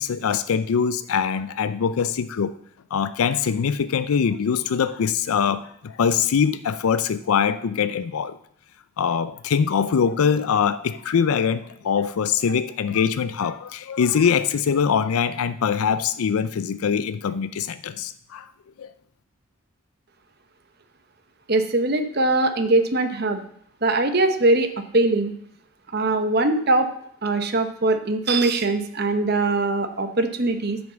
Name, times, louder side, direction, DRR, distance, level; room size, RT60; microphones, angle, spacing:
voice 1, 0.0-2.5 2.9-8.4 9.0-18.5 18.8-18.9, left 7 dB, 85° left, 12 dB, 0.4 m, -23 dB
voice 2, 21.5-23.4 23.8-25.3 25.9-26.9 27.2-30.8, right 2 dB, 45° right, 8 dB, 0.9 m, -21 dB
9.5 x 5.3 x 7.1 m, 0.67 s
head